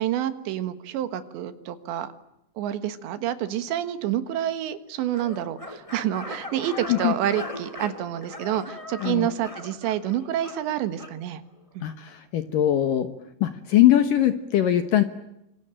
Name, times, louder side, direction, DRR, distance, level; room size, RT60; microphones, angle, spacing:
voice 1, 0.0-2.1 2.6-11.4 11.8-11.9, right 11 dB, 70° right, 11 dB, 3.5 m, -28 dB
sound 1, 5.1-11.2, left 2 dB, 30° left, 0.5 m, -39 dB
voice 2, 9.0-9.3 11.8-13.1 13.4-15.0, left 12 dB, 75° left, 9 dB, 2.0 m, -21 dB
26.0 x 24.0 x 8.9 m, 0.83 s
omnidirectional pair, 5.7 m